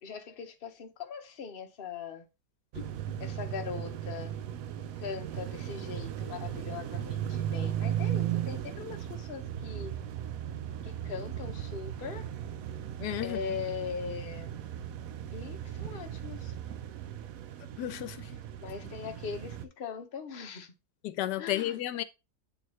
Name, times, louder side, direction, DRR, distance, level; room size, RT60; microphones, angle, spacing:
voice 1, 0.0-2.2 3.2-4.3 5.0-10.0 10.8-12.3 13.2-14.6 15.3-16.5 18.6-20.7 21.4-22.0, left 6 dB, 45° left, 0.9 m, -40 dB
sound 1, 2.7-19.7, right 11 dB, 70° right, 0.9 m, -37 dB
voice 2, 2.8-3.2 13.0-13.4 17.8-18.3 21.0-22.0, left 13 dB, 90° left, 1.2 m, -33 dB
7.9 x 4.5 x 3.1 m
omnidirectional pair, 1.8 m